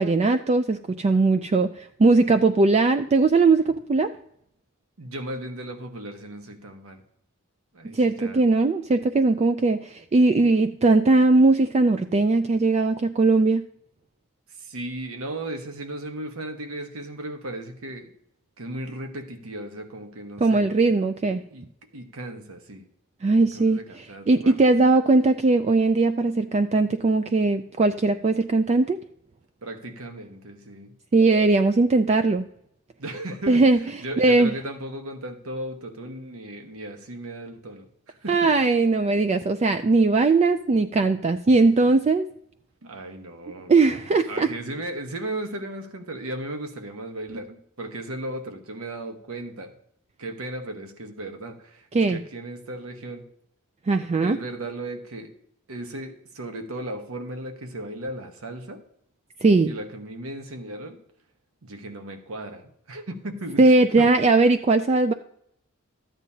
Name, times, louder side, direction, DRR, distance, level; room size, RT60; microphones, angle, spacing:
voice 1, 0.0-4.1 7.8-13.7 20.4-21.4 23.2-29.0 31.1-32.5 33.5-33.8 34.2-34.5 38.3-42.2 43.7-44.5 51.9-52.2 53.9-54.4 59.4-59.7 63.6-65.1, right 3 dB, 30° right, 9 dB, 0.3 m, -19 dB
voice 2, 5.0-7.0 7.7-8.4 14.6-18.1 18.6-20.7 21.5-21.7 21.9-22.8 23.4-24.7 29.6-30.9 33.0-33.6 34.0-37.9 38.2-38.5 42.8-43.7 44.3-49.7 50.2-53.2 54.2-55.3 55.7-58.8 59.7-61.0 61.6-64.1, right 1 dB, 80° right, 6 dB, 1.1 m, -36 dB
13.5 x 9.1 x 2.8 m, 0.70 s
head